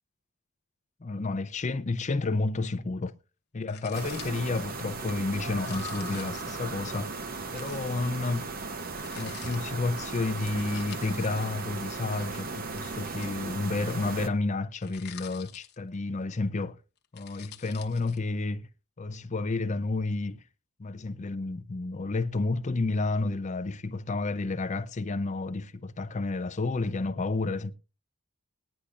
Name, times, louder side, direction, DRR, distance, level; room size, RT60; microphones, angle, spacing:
voice 1, 1.0-3.1 3.5-7.1 7.5-8.5 9.2-16.8 17.1-18.7 19.0-20.4 20.8-27.7, left 3 dB, 30° left, 0.5 m, -31 dB
sound 1, 3.7-4.5 5.5-6.5 7.5-7.9 9.0-9.6 10.6-11.4 12.9-13.7 14.8-16.0 17.0-18.2, left 11 dB, 50° left, 0.9 m, -48 dB
sound 2, 3.9-14.3, right 3 dB, 40° right, 0.9 m, -37 dB
19.5 x 9.9 x 2.5 m
head